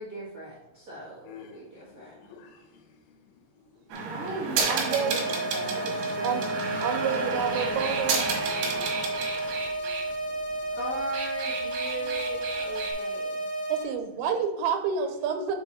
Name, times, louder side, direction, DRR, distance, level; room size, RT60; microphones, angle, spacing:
voice 1, 0.0-2.1 4.0-6.5 10.8-13.5, right 1 dB, 45° right, -10 dB, 1.1 m, -38 dB
voice 2, 1.2-3.2 3.5-4.1 8.4-10.0 10.5-10.8, left 6 dB, 80° left, 5 dB, 2.9 m, -52 dB
sound 1, 3.9-10.0 10.9-12.9, right 4 dB, 70° right, 2.7 m, -31 dB
voice 3, 4.7-5.2 6.2-8.3 13.7-15.6, right 7 dB, 90° right, 6 dB, 3.1 m, -29 dB
sound 2, 4.8-13.8, right 1 dB, 25° left, 1.4 m, -32 dB
6.3 x 4.7 x 4.1 m, 0.95 s
omnidirectional pair, 5.1 m